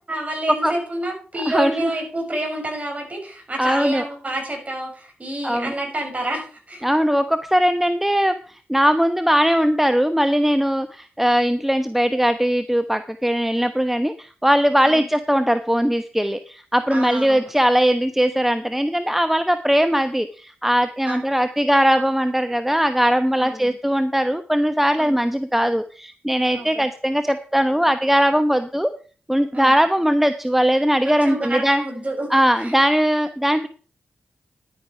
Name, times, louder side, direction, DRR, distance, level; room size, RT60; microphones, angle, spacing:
voice 1, 0.1-6.9 14.8-15.1 16.9-17.4 21.0-21.2 23.4-23.7 25.0-25.2 26.5-26.8 29.5-29.7 31.2-32.3 32.6-32.7, right 1 dB, 35° right, 1 dB, 6.8 m, -29 dB
voice 2, 1.5-1.9 3.6-4.1 5.4-5.7 6.8-8.4 8.7-28.9 29.3-31.8 32.3-33.7, equal, 5° right, 10 dB, 1.0 m, -20 dB
11.0 x 9.5 x 4.9 m, 0.40 s
supercardioid pair, 40°, 4 cm